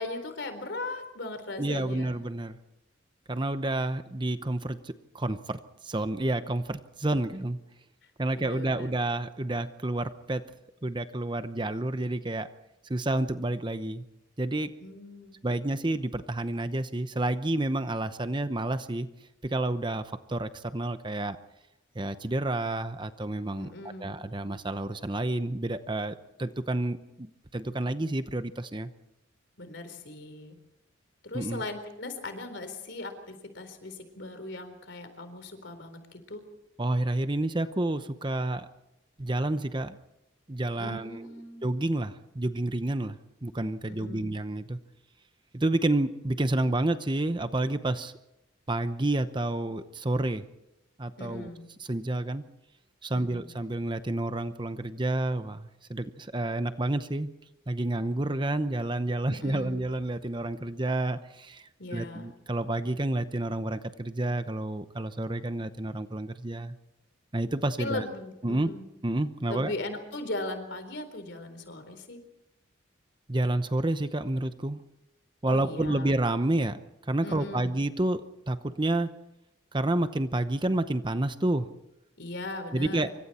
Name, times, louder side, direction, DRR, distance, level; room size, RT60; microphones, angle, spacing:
voice 1, 0.0-2.2 8.3-8.9 14.8-15.4 23.6-24.2 29.6-30.6 31.2-36.4 40.8-41.7 43.9-44.3 51.2-51.6 53.1-53.5 59.3-59.8 61.8-62.3 67.8-68.8 69.5-72.2 75.5-76.1 77.2-77.8 82.2-83.0, left 2 dB, 60° left, 9 dB, 4.0 m, -38 dB
voice 2, 1.6-2.6 3.3-7.6 8.2-10.5 10.8-12.5 12.8-14.0 14.4-14.8 15.4-19.1 19.4-21.4 21.9-23.7 24.0-28.9 31.3-31.6 36.8-38.7 39.2-40.0 40.5-41.2 41.6-44.8 45.5-48.1 48.7-50.4 51.0-51.5 51.9-52.4 53.0-57.3 57.7-66.7 67.3-68.0 68.4-68.7 69.0-69.7 73.3-74.8 75.4-76.8 77.1-79.1 79.7-81.7 82.7-83.1, right 1 dB, 25° right, 11 dB, 0.8 m, -29 dB
27.0 x 25.0 x 4.4 m, 0.90 s
head